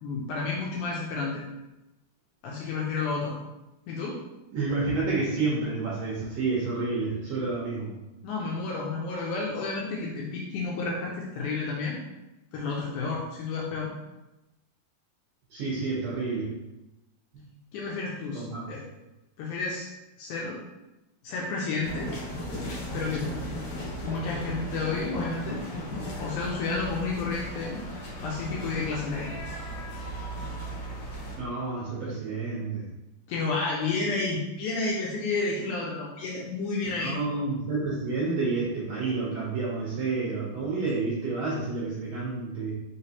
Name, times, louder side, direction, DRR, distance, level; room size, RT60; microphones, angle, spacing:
voice 1, 0.0-1.4 2.4-3.3 3.9-4.2 8.2-12.0 12.5-13.9 17.7-18.8 19.4-19.9 20.2-20.6 21.2-22.1 22.9-23.3 24.0-25.6 26.2-27.8 28.2-29.3 33.3-37.2, left 3 dB, 80° left, -3 dB, 1.8 m, -31 dB
voice 2, 4.5-7.9 15.5-16.5 17.3-17.4 18.3-18.6 31.4-32.9 36.9-42.7, right 3 dB, 70° right, -7 dB, 1.7 m, -29 dB
sound 1, 21.8-31.4, equal, 60° left, 1.9 m, -36 dB
4.9 x 3.2 x 2.8 m, 0.99 s
omnidirectional pair, 3.9 m